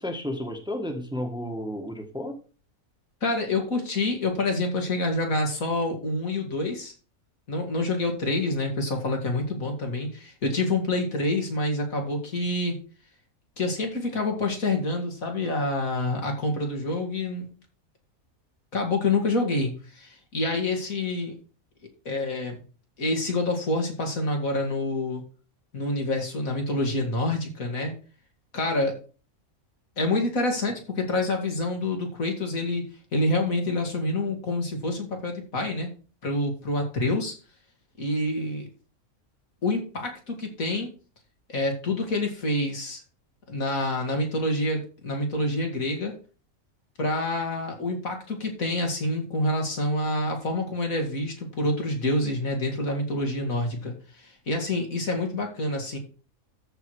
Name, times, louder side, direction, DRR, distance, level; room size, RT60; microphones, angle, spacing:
voice 1, 0.0-2.4, left 1 dB, 5° right, 3 dB, 1.5 m, -32 dB
voice 2, 3.2-6.9 7.5-12.8 13.6-17.5 18.7-21.4 22.0-22.6 23.0-25.2 25.7-27.9 28.5-29.0 30.0-32.8 33.1-35.9 36.2-37.3 38.0-38.7 39.6-40.9 41.5-43.0 43.5-46.1 47.0-56.0, left 2 dB, 75° left, 3 dB, 2.8 m, -27 dB
13.5 x 4.8 x 4.7 m, 0.36 s
omnidirectional pair, 1.5 m